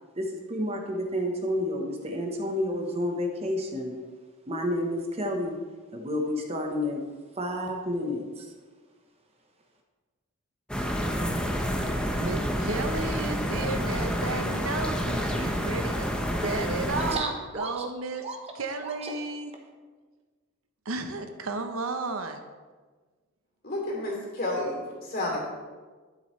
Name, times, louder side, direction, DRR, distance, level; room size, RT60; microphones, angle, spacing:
voice 1, 0.1-4.0 4.5-5.6 5.9-7.0 7.3-8.5 16.9-17.9 18.2-18.4 18.8-19.1, equal, 30° right, 2 dB, 1.0 m, -30 dB
sound 1, 10.7-17.2, equal, 5° left, 0.8 m, -29 dB
voice 2, 12.2-16.1 16.4-19.5 20.8-22.4, right 3 dB, 80° right, 7 dB, 0.8 m, -33 dB
voice 3, 23.6-25.4, left 1 dB, 45° left, -2 dB, 2.9 m, -31 dB
12.0 x 7.6 x 3.2 m, 1.4 s
head